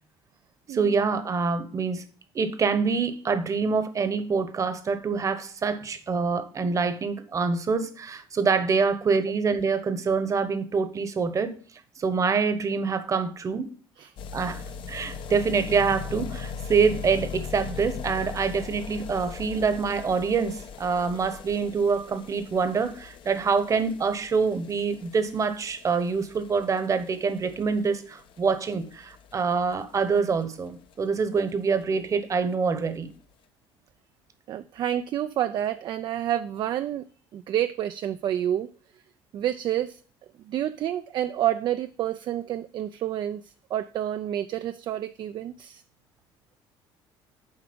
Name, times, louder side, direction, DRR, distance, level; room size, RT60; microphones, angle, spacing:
voice 1, 0.7-2.0 2.3-11.6 12.0-13.7 14.3-33.1, right 5 dB, 35° right, 1.0 m, -26 dB
sound 1, 14.2-30.9 31.2-31.3 31.5-31.6 31.8-31.9 32.2-32.3 32.9-33.0, left 6 dB, 60° left, 0.8 m, -40 dB
voice 2, 34.5-37.0 37.3-38.7 39.3-40.0 40.5-45.8, right 11 dB, 50° right, 0.4 m, -29 dB
7.9 x 4.8 x 5.2 m
cardioid pair, 105°, 10 cm